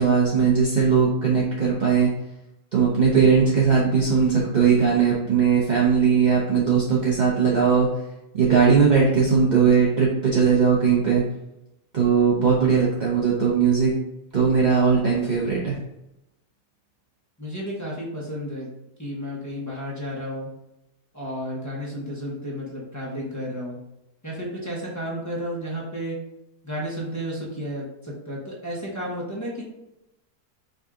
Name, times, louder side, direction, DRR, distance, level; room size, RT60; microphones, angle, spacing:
voice 1, 0.0-2.1 2.7-7.9 8.3-11.2 11.9-13.9 14.3-15.8, right 6 dB, 45° right, -5 dB, 0.6 m, -19 dB
voice 2, 17.4-18.7 19.0-20.5 21.1-23.8 24.2-26.2 26.6-29.6, equal, 15° left, -6 dB, 1.0 m, -32 dB
5.2 x 2.7 x 3.7 m, 0.89 s
omnidirectional pair, 1.7 m